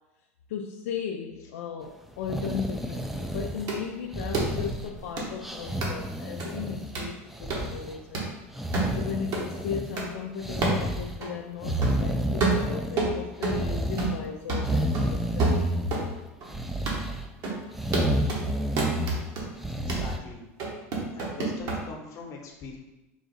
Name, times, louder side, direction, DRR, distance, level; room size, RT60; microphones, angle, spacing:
voice 1, 0.5-8.3 8.6-15.7, left 7 dB, 80° left, 1 dB, 0.4 m, -36 dB
sound 1, 2.2-3.8 4.1-5.0 5.4-7.0 7.3-8.0 8.5-10.0 10.4-11.2 11.6-13.1 13.4-14.2 14.6-16.1 16.5-17.2 17.7-19.2 19.6-20.2, right 1 dB, 5° right, 0.4 m, -30 dB
sound 2, 3.7-3.8 4.3-4.5 5.2-5.3 5.8-5.9 6.4-6.5 7.0-7.1 7.5-7.7 8.1-8.3 8.7-8.9 9.3-9.5 10.0-10.1 10.6-10.8 11.2-11.3 11.8-12.0 12.4-13.6 14.0-14.2 14.5-16.1 16.4-16.5 16.9-17.0 17.4-17.6 17.9-18.4 18.8-19.5 19.9-20.1 20.6-21.8, right 3 dB, 50° right, 1.2 m, -28 dB
sound 3, 4.3-6.6, right 1 dB, 80° right, 0.7 m, -45 dB
voice 2, 19.8-20.5 21.2-22.8, left 4 dB, 45° left, 1 dB, 0.9 m, -41 dB
3.9 x 2.3 x 4.1 m, 1.0 s
hypercardioid pair, 95°, 7 cm